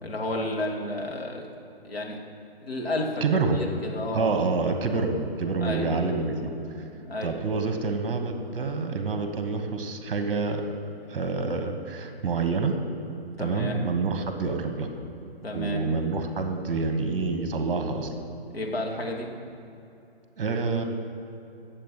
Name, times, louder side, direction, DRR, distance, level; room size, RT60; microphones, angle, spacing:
voice 1, 0.0-1.4 1.8-2.2 2.6-3.2 3.5-4.3 5.6-5.9 7.0-7.4 13.4-13.8 15.4-15.8 18.5-19.3, left 1 dB, 70° left, 0 dB, 2.3 m, -31 dB
voice 2, 3.2-3.7 4.1-6.6 7.2-10.6 11.1-12.8 13.4-14.9 15.5-18.1 20.4-20.8, right 4 dB, 30° right, 6 dB, 1.5 m, -27 dB
19.5 x 7.5 x 5.6 m, 2.8 s
figure-of-eight pair, 140°, 31 cm